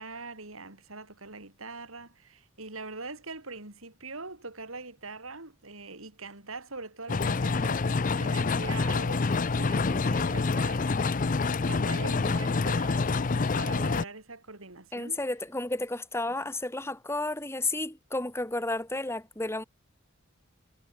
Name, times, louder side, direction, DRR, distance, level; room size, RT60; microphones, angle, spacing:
voice 1, 0.0-13.1 13.6-15.2, right 3 dB, 85° right, 5.6 m, -43 dB
sound 1, 7.1-14.0, left 4 dB, 40° left, 0.5 m, -27 dB
voice 2, 14.9-19.6, left 2 dB, 10° left, 2.2 m, -32 dB
head